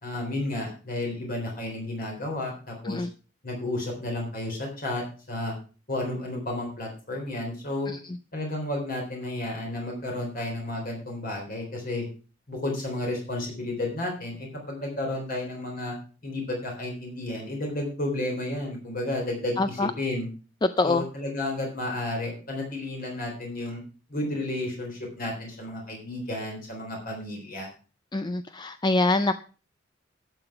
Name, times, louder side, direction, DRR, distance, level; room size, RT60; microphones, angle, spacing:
voice 1, 0.0-3.1 3.4-5.5 5.9-7.9 8.3-12.1 12.5-16.0 16.2-20.3 20.8-23.8 24.1-27.7, left 1 dB, 50° left, 0 dB, 3.7 m, -32 dB
voice 2, 19.6-19.9 20.8-21.0 28.1-29.3, left 2 dB, 25° left, 11 dB, 0.4 m, -24 dB
12.0 x 6.9 x 5.8 m, 0.37 s
head